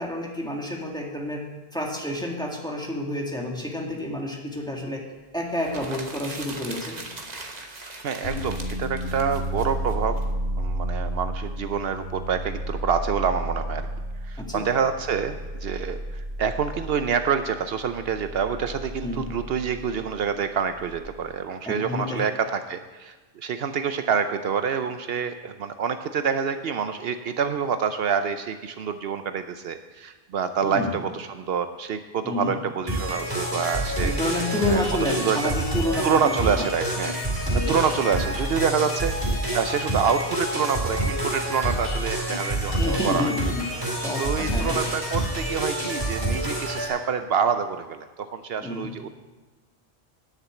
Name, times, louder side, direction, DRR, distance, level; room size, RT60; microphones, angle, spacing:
voice 1, 0.0-1.4 1.7-5.0 5.3-7.0 14.4-14.7 19.0-19.3 21.6-22.2 30.6-31.0 32.2-32.6 34.0-36.7 37.5-37.8 42.8-43.7 44.0-44.8 48.6-48.9, left 1 dB, 5° left, -1 dB, 1.7 m, -29 dB
sound 1, 5.5-10.2, right 2 dB, 40° right, 1.2 m, -40 dB
voice 2, 8.0-10.2 10.6-13.8 14.3-34.1 34.7-34.8 35.2-35.4 36.0-37.2 37.7-39.2 39.5-43.3 44.2-49.1, right 6 dB, 70° right, 9 dB, 0.8 m, -27 dB
sound 2, 8.2-21.0, right 1 dB, 65° left, 4.0 m, -32 dB
sound 3, 32.9-46.9, right 1 dB, 25° right, 3.6 m, -27 dB
10.0 x 6.8 x 8.2 m, 1.2 s
omnidirectional pair, 1.1 m